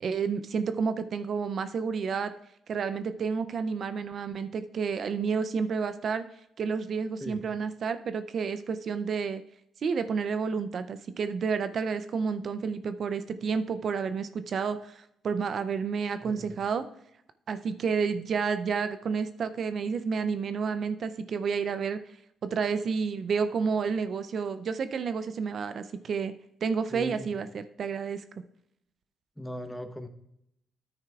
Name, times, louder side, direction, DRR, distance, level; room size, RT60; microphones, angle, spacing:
voice 1, 0.0-2.3 2.7-6.2 6.6-9.4 9.8-16.8 17.5-22.0 22.4-26.3 26.6-28.2, right 5 dB, 55° right, 11 dB, 0.5 m, -30 dB
voice 2, 16.2-16.6 26.9-27.3 29.4-30.1, left 1 dB, 5° left, 7 dB, 0.9 m, -39 dB
10.0 x 9.2 x 2.3 m, 0.79 s
cardioid pair, 90°, 0 cm